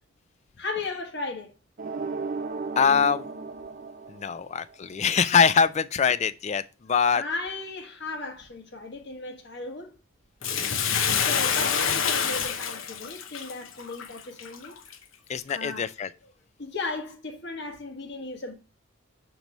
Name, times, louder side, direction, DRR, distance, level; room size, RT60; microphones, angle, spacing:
voice 1, 0.6-1.5 4.3-4.4 7.1-9.9 11.1-14.8 15.5-15.9 16.6-18.5, left 3 dB, 55° left, 1.3 m, -36 dB
sound 1, 1.8-4.8, right 4 dB, 40° right, 0.5 m, -35 dB
voice 2, 2.8-3.3 4.1-7.2 10.4-10.7 15.3-16.1, left 6 dB, 35° left, 0.3 m, -23 dB
Bathtub (filling or washing), 10.4-14.9 15.5-15.6, left 7 dB, 70° left, 0.7 m, -27 dB
6.7 x 3.0 x 5.2 m
head